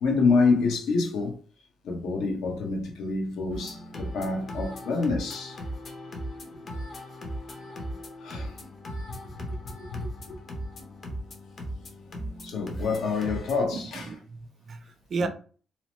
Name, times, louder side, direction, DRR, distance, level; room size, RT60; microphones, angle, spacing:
voice 1, 0.0-1.4 1.8-5.6 8.2-8.6 9.4-10.4 12.4-14.1 15.2-15.3, left 4 dB, 80° left, 0.9 m, -27 dB
sound 1, 3.5-13.6, equal, 50° left, 0.8 m, -38 dB
voice 2, 13.7-15.3, right 4 dB, 50° right, 0.4 m, -34 dB
2.8 x 2.0 x 3.0 m
cardioid pair, 90°, 0 cm